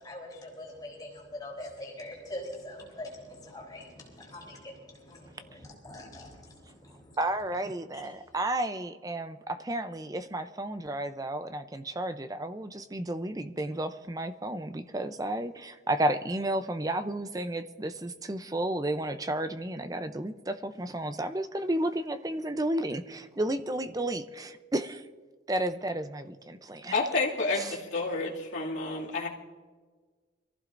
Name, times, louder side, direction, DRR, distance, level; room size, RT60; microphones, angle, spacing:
voice 1, 0.0-7.2 7.9-8.0, left 1 dB, 20° left, -2 dB, 3.7 m, -43 dB
voice 2, 7.2-25.1 25.5-26.9 27.5-27.8, right 1 dB, 20° right, 10 dB, 0.5 m, -32 dB
voice 3, 26.9-29.3, left 3 dB, 70° left, -4 dB, 2.4 m, -30 dB
24.0 x 15.0 x 2.6 m, 1.4 s
head